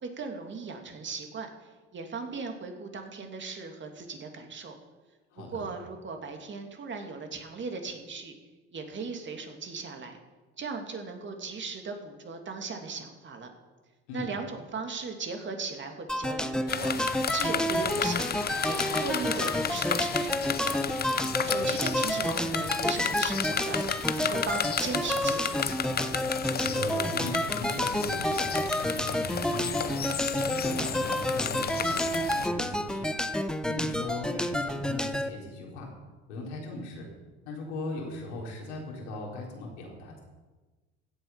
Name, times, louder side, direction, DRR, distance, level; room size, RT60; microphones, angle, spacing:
voice 1, 0.0-4.7 5.4-8.3 8.7-10.2 10.6-13.5 14.1-16.9 17.3-18.3 18.6-20.8 21.4-23.8 24.1-25.6, right 4 dB, 35° right, 4 dB, 2.6 m, -37 dB
voice 2, 5.3-5.6 14.1-14.3 21.4-21.7 26.5-33.1 33.7-35.9 36.3-37.1 37.4-40.2, left 2 dB, 80° left, -1 dB, 4.1 m, -39 dB
sound 1, 16.1-35.3, equal, ahead, 0.9 m, -30 dB
sound 2, 16.7-32.5, left 8 dB, 30° left, 0.8 m, -33 dB
16.0 x 8.1 x 5.7 m, 1.2 s
hypercardioid pair, 70°, 33 cm